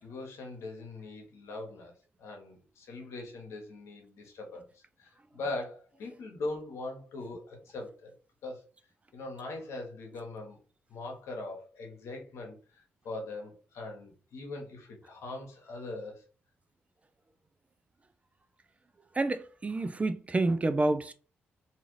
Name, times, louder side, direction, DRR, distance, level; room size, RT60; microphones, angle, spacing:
voice 1, 0.0-1.9 2.2-8.1 8.4-8.6 9.1-10.6 10.9-16.2, left 2 dB, 75° left, 1.0 m, -41 dB
voice 2, 19.1-21.1, right 2 dB, 30° right, 0.3 m, -28 dB
2.7 x 2.4 x 3.1 m
supercardioid pair, 55°, 5 cm